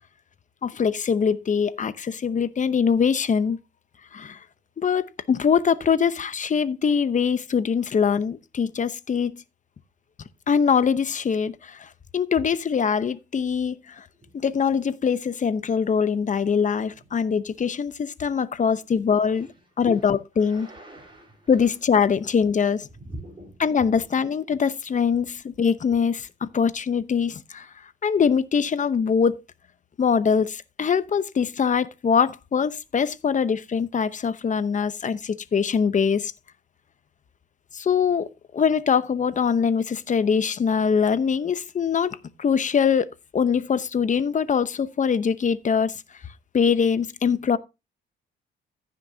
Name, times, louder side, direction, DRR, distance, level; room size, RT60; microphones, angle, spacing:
voice 1, 0.6-3.6 4.1-4.4 4.8-9.4 10.5-11.8 12.1-13.8 14.3-19.5 19.8-20.7 21.5-22.9 23.6-27.7 28.0-29.4 30.0-36.3 37.7-43.1 43.3-45.9 46.5-47.6, left 6 dB, 40° left, 0.9 m, -23 dB
voice 2, 20.4-21.7 23.0-23.6 23.9-24.0, left 1 dB, 25° right, 4.1 m, -41 dB
15.0 x 6.1 x 2.8 m
cardioid pair, 90°, 20 cm